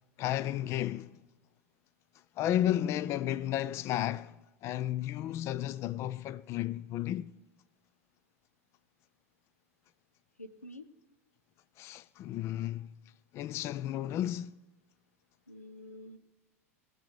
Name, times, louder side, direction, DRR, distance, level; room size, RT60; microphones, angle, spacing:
voice 1, 0.2-1.2 2.4-7.4 11.8-12.9 13.3-14.6, left 12 dB, 35° left, 0.3 m, -33 dB
voice 2, 10.4-10.9 15.5-16.2, left 1 dB, 90° left, 0.7 m, -48 dB
20.5 x 6.9 x 4.9 m
figure-of-eight pair, 85°, 8 cm